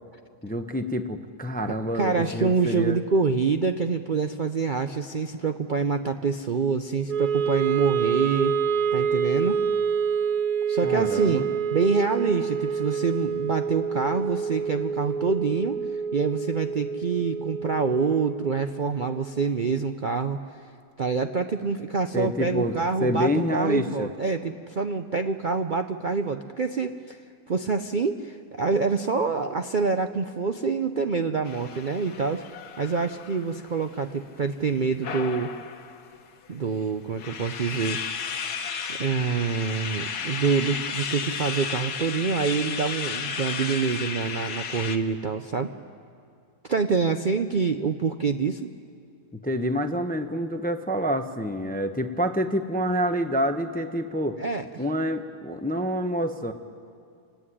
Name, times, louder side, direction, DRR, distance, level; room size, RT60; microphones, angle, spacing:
voice 1, 0.4-3.0 10.8-11.4 22.1-24.1 49.4-54.4 54.8-56.5, equal, 10° left, 8 dB, 0.4 m, -27 dB
voice 2, 2.0-8.6 8.9-9.6 10.7-15.8 16.1-20.4 21.0-27.2 27.5-32.4 32.8-35.5 36.5-38.0 38.4-45.7 46.6-48.7 54.4-54.6, right 5 dB, 85° right, 7 dB, 0.4 m, -26 dB
Wind instrument woodwind instrument, 7.1-19.3, right 6 dB, 65° right, 1.4 m, -27 dB
sound 1, 31.4-34.1 35.0-36.2 36.8-36.9 37.2-45.0, left 6 dB, 65° left, 1.6 m, -33 dB
27.0 x 17.5 x 10.0 m, 2.3 s
omnidirectional pair, 1.9 m